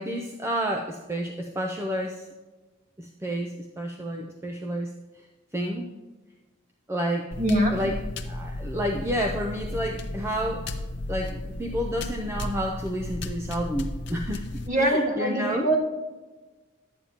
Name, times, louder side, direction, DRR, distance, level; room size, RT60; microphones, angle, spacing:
voice 1, 0.0-2.3 3.0-4.9 5.5-5.9 6.9-7.3 7.7-7.9 8.3-10.7 11.1-14.5 14.7-15.7, equal, 10° right, 1 dB, 0.5 m, -30 dB
sound 1, 7.3-14.7, left 1 dB, 55° left, 0.7 m, -34 dB
voice 2, 7.4-7.7 14.7-15.7, right 1 dB, 40° right, 0 dB, 1.6 m, -23 dB
11.5 x 8.6 x 2.9 m, 1.2 s
head